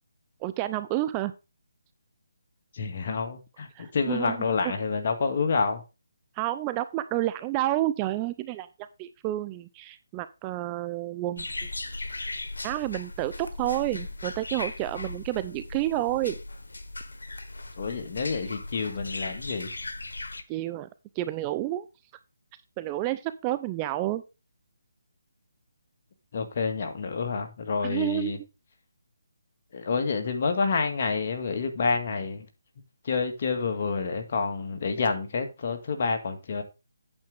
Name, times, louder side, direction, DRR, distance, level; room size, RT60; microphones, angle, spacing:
voice 1, 0.4-1.3 3.8-4.7 6.4-8.7 9.0-11.5 12.6-16.4 20.5-20.9 21.2-21.9 22.8-24.2 27.8-28.4, right 15 dB, 20° right, 0.5 m, -30 dB
voice 2, 2.7-5.8 17.8-19.7 26.3-28.4 29.7-32.5 33.0-36.6, left 4 dB, 45° left, 1.9 m, -28 dB
sound 1, 11.4-20.4, left 2 dB, 85° left, 1.3 m, -38 dB
8.8 x 7.6 x 3.7 m
hypercardioid pair, 160°, 0 cm